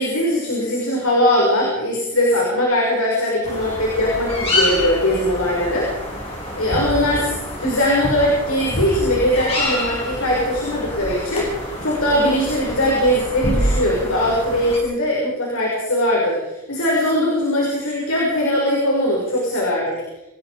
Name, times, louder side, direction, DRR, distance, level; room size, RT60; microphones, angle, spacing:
voice 1, 0.0-5.9 6.6-7.3 7.6-20.0, left 1 dB, 70° left, -3 dB, 6.4 m, -20 dB
sound 1, 3.4-14.8, left 1 dB, 25° left, 7.2 m, -26 dB
27.5 x 19.0 x 5.2 m, 0.95 s
head